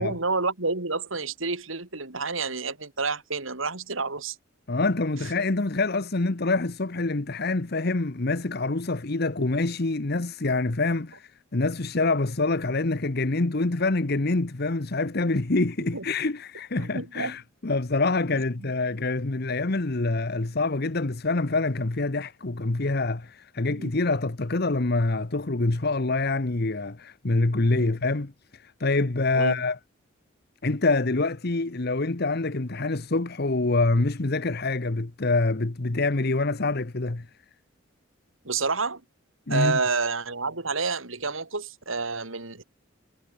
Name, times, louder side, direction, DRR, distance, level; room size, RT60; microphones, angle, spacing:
voice 1, 0.0-4.4 15.9-16.0 16.8-17.4 18.6-18.7 23.7-23.9 27.7-27.9 29.3-29.6 38.4-39.0 39.5-42.6, right 4 dB, 85° right, 3.8 m, -29 dB
voice 2, 4.7-29.8 30.6-37.3 39.5-39.8, left 3 dB, 50° left, 1.1 m, -26 dB
head